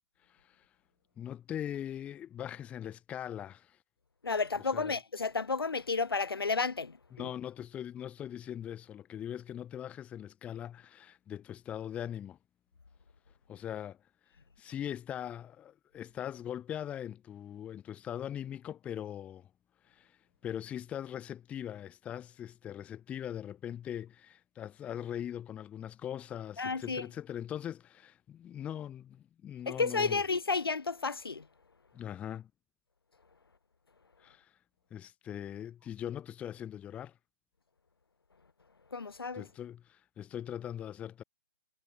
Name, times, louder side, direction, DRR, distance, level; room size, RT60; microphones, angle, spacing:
voice 1, 0.3-0.6 1.2-3.8 4.7-4.9 7.1-12.4 13.5-14.0 14.6-19.5 19.9-20.2 20.4-30.2 31.9-32.5 34.2-34.5 34.9-37.1 39.3-41.2, left 10 dB, 10° left, 0.9 m, -41 dB
voice 2, 4.2-7.3 26.6-27.1 29.6-31.5 38.9-39.5, left 4 dB, 85° left, 3.3 m, -32 dB
hypercardioid pair, 155°, 12 cm